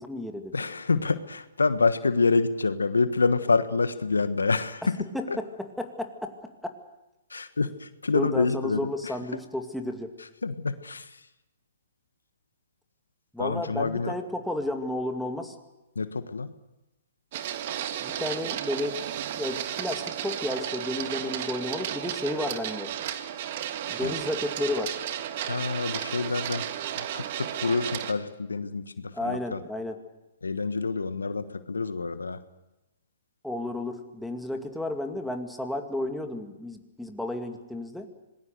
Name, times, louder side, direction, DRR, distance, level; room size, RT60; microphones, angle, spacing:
voice 1, 0.0-0.5 5.1-6.3 6.6-6.7 8.1-10.1 13.3-15.5 18.0-19.0 19.4-22.9 23.9-24.9 29.1-30.0 33.4-38.1, left 1 dB, ahead, 4 dB, 2.3 m, -32 dB
voice 2, 0.5-5.4 7.3-9.1 10.4-11.2 13.4-14.1 15.9-16.5 24.0-24.1 25.4-26.6 27.0-29.6 30.4-32.4, left 4 dB, 85° left, 12 dB, 1.3 m, -27 dB
Printer, 17.3-28.1, right 10 dB, 50° right, 1.7 m, -33 dB
26.5 x 20.5 x 6.8 m, 0.96 s
hypercardioid pair, 120°, 0 cm